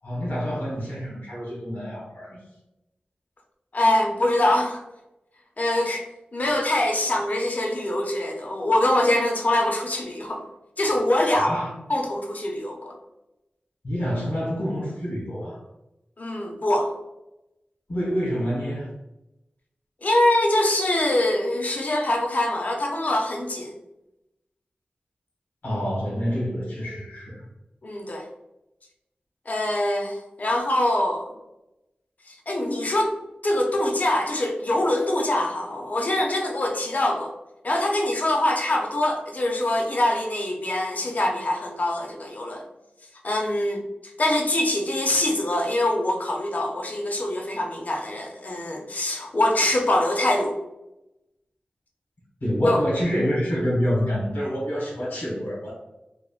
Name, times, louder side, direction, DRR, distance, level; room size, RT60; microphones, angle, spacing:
voice 1, 0.0-2.4 11.3-11.7 13.8-15.6 17.9-18.9 25.6-27.4 52.4-55.7, equal, 80° left, -6 dB, 1.3 m, -27 dB
voice 2, 3.7-4.8 5.6-6.0 6.3-10.4 10.8-11.5 11.9-13.0 16.2-16.9 20.0-23.7 27.8-28.3 29.5-31.3 32.3-33.1 33.4-37.3 37.6-42.6 43.2-43.8 44.2-50.5 52.6-52.8, left 1 dB, 50° left, 1 dB, 0.6 m, -24 dB
3.4 x 2.1 x 2.4 m, 0.93 s
wide cardioid pair, 60°, 3 cm